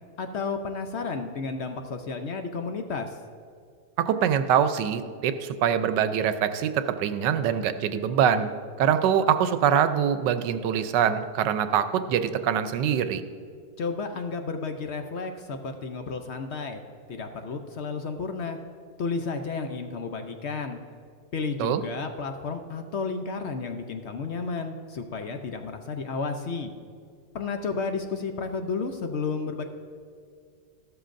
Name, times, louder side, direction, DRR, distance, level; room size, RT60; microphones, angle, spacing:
voice 1, 0.2-3.2 13.8-16.8 17.1-18.6 19.0-20.8 21.3-26.7 27.3-29.6, left 4 dB, 65° left, 6 dB, 0.6 m, -32 dB
voice 2, 4.0-8.5 8.8-13.2 21.6-21.8, right 8 dB, 80° right, 10 dB, 1.3 m, -24 dB
14.5 x 12.5 x 2.6 m, 2.3 s
omnidirectional pair, 1.9 m